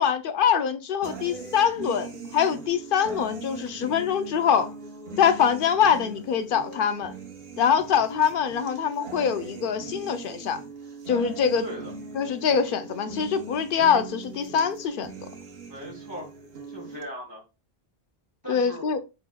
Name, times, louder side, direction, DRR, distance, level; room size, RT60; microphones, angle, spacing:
voice 1, 0.0-4.7 5.2-7.1 7.6-10.6 11.1-11.7 12.1-15.1 18.5-19.0, left 7 dB, 65° left, 0.7 m, -24 dB
sound 1, 1.0-17.0, right 3 dB, 65° right, 1.1 m, -40 dB
voice 2, 11.6-11.9 15.6-16.3 16.7-17.4 18.4-18.9, equal, 20° left, 1.5 m, -38 dB
5.1 x 3.4 x 2.2 m
omnidirectional pair, 1.1 m